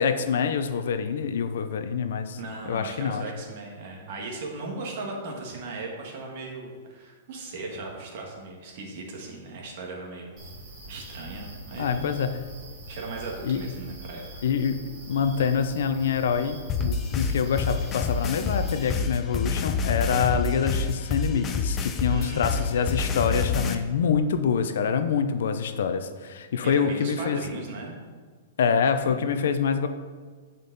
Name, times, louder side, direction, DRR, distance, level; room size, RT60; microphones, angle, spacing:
voice 1, 0.0-2.4 2.7-3.2 11.8-12.4 13.4-13.7 14.4-27.4 28.6-29.9, left 6 dB, 65° left, 9 dB, 0.6 m, -26 dB
voice 2, 2.4-10.3 10.9-12.2 12.9-14.2 22.1-22.4 26.6-28.0 29.1-29.2, right 3 dB, 45° right, -1 dB, 1.7 m, -37 dB
sound 1, 10.4-19.0, right 1 dB, 25° right, 1.6 m, -43 dB
sound 2, 16.7-23.7, left 5 dB, 15° left, 0.4 m, -27 dB
8.7 x 5.3 x 4.0 m, 1.5 s
hypercardioid pair, 170°, 0 cm